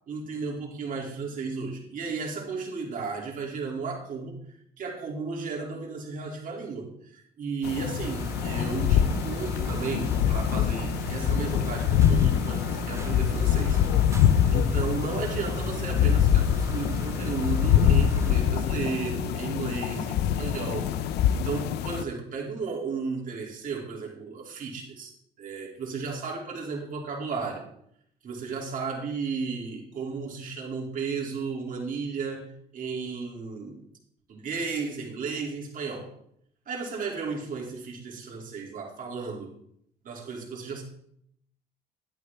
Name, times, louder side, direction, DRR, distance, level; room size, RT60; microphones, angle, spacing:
voice 1, 0.1-4.4 4.8-13.8 14.5-25.1 25.4-27.7 28.2-33.8 34.3-36.1 36.7-39.5 40.0-40.8, right 4 dB, 55° right, -1 dB, 2.8 m, -34 dB
sound 1, 7.6-22.0, left 9 dB, 80° left, 0.6 m, -24 dB
sound 2, 8.0-18.4, right 3 dB, 15° right, 0.7 m, -37 dB
11.5 x 9.3 x 3.5 m, 0.69 s
cardioid pair, 110°, 17 cm